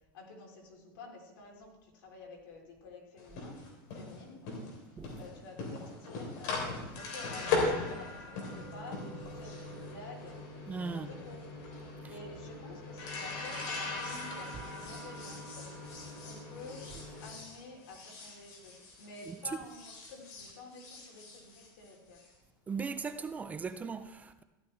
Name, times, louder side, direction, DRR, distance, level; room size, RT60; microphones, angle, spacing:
voice 1, 0.1-3.6 3.9-4.7 5.2-9.0 9.3-10.4 10.9-11.5 12.1-15.7 16.2-16.9 17.2-22.2, left 3 dB, 85° left, 3.5 m, -50 dB
sound 1, 3.2-19.4 19.6-22.3, left 3 dB, 55° left, 3.4 m, -39 dB
voice 2, 10.7-11.1 19.3-19.4 22.7-24.4, right 5 dB, 15° right, 0.4 m, -38 dB
14.5 x 11.5 x 3.3 m
supercardioid pair, 155°, 11 cm